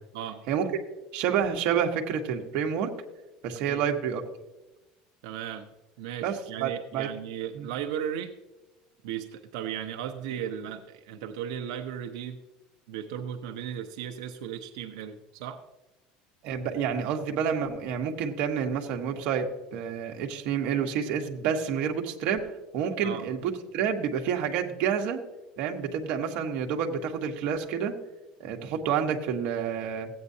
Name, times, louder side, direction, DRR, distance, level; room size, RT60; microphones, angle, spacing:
voice 1, 1.1-2.9 3.4-4.2 6.2-7.1 7.5-7.7 16.4-22.5 22.7-25.2 25.6-27.9 28.4-30.1, right 7 dB, 55° right, 3 dB, 1.2 m, -29 dB
voice 2, 5.2-5.7 6.0-8.3 9.0-12.4 12.9-15.6 23.0-23.2, right 9 dB, 90° right, 4 dB, 0.7 m, -36 dB
15.5 x 8.7 x 2.7 m, 1.0 s
cardioid pair, 160°, 3 cm